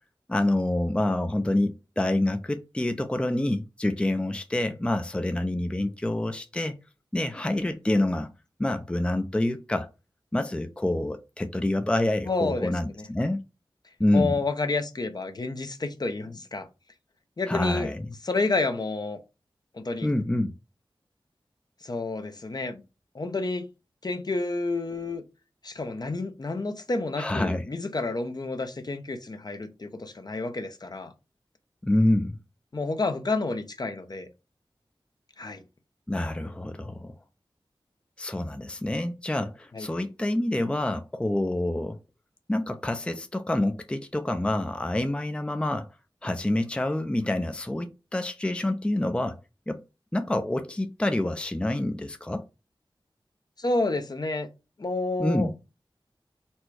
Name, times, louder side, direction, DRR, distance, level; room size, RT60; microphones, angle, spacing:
voice 1, 0.3-6.8 7.1-8.3 8.6-9.9 10.3-13.4 14.0-14.3 17.5-18.1 20.0-20.5 27.2-27.6 31.8-32.4 36.1-37.1 38.2-42.0 42.5-45.9 46.2-49.4 49.7-49.8 50.1-52.4 55.2-55.5, left 1 dB, 10° left, 0.5 m, -27 dB
voice 2, 12.3-12.7 13.0-13.1 14.1-16.7 17.4-17.9 18.2-19.2 19.7-20.1 21.8-22.8 23.1-23.7 24.0-25.2 25.6-31.1 32.7-34.3 35.4-35.6 39.7-39.9 53.6-54.5 54.8-55.5, left 3 dB, 50° left, 0.7 m, -29 dB
4.2 x 2.2 x 4.6 m
wide cardioid pair, 70°, 9 cm